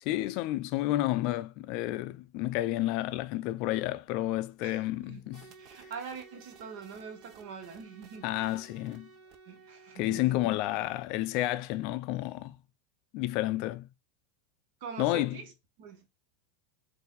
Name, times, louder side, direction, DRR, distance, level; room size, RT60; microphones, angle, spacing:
voice 1, 0.0-5.4 5.8-5.9 8.2-9.1 10.0-12.6 13.1-13.9 15.0-15.4, left 16 dB, 45° left, 0.4 m, -30 dB
voice 2, 4.6-5.2 5.6-8.5 9.5-10.6 14.8-15.5 15.8-16.1, right 6 dB, 60° right, 1.4 m, -44 dB
sound 1, 5.3-10.7, right 5 dB, 40° right, 0.6 m, -55 dB
4.1 x 2.6 x 3.9 m
supercardioid pair, 160°, 0 cm